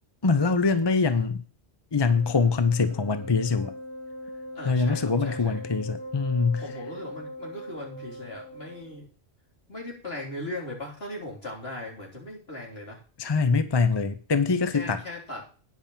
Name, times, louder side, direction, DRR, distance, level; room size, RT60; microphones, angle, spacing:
voice 1, 0.2-1.4 1.9-3.7 4.6-6.6 13.2-15.0, left 4 dB, 30° left, 11 dB, 0.6 m, -24 dB
Wind instrument woodwind instrument, 2.0-9.0, equal, 80° left, 2.6 m, -41 dB
voice 2, 4.6-5.6 6.6-9.1 9.7-13.0 14.7-15.4, left 1 dB, 65° left, -3 dB, 4.0 m, -38 dB
9.8 x 5.5 x 7.2 m, 0.39 s
omnidirectional pair, 1.1 m